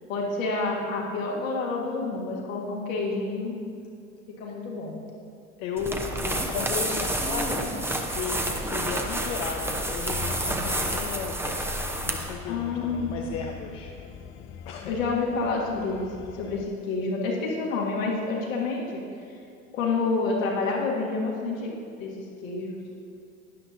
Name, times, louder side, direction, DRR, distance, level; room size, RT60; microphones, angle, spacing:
voice 1, 0.1-3.6 4.3-5.0 12.5-13.2 14.9-19.0 19.3-19.4 19.7-21.7 22.0-22.2 22.4-22.7, left 3 dB, 70° left, -3 dB, 2.1 m, -28 dB
voice 2, 5.6-11.6 12.0-13.9 14.7-14.9, left 6 dB, 55° left, 2 dB, 0.8 m, -35 dB
sound 1, 5.8-12.4, right 1 dB, 5° right, 0.9 m, -29 dB
sound 2, 10.1-16.7, left 7 dB, 30° left, 0.5 m, -42 dB
12.0 x 10.0 x 2.7 m, 2.5 s
figure-of-eight pair, 70°, 42 cm